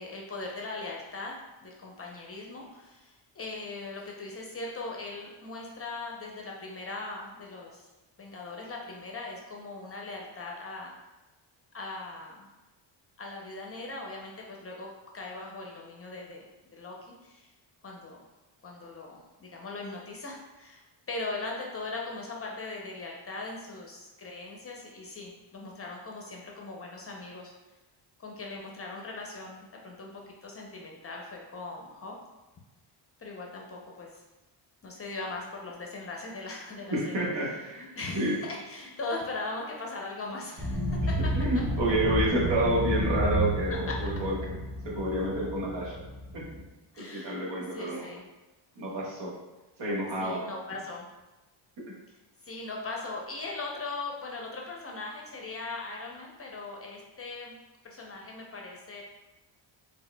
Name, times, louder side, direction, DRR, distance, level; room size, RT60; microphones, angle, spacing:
voice 1, 0.0-1.3 1.6-7.9 8.2-10.9 11.7-12.5 13.2-17.5 17.8-18.2 18.6-27.5 28.2-32.1 33.2-34.1 34.8-37.1 37.4-41.3 43.9-44.0 46.9-47.5 47.7-48.2 50.2-51.1 52.4-57.5 57.8-59.0, left 3 dB, 30° left, -1 dB, 0.6 m, -40 dB
voice 2, 36.9-37.9 38.1-38.4 41.3-44.4 44.8-45.9 46.3-46.5 47.0-48.1 48.8-49.3 49.8-50.4, right 1 dB, 60° right, -4 dB, 1.4 m, -29 dB
sound 1, 40.6-46.6, equal, 35° right, 1.4 m, -31 dB
4.6 x 3.7 x 2.2 m, 1.1 s
cardioid pair, 120°, 47 cm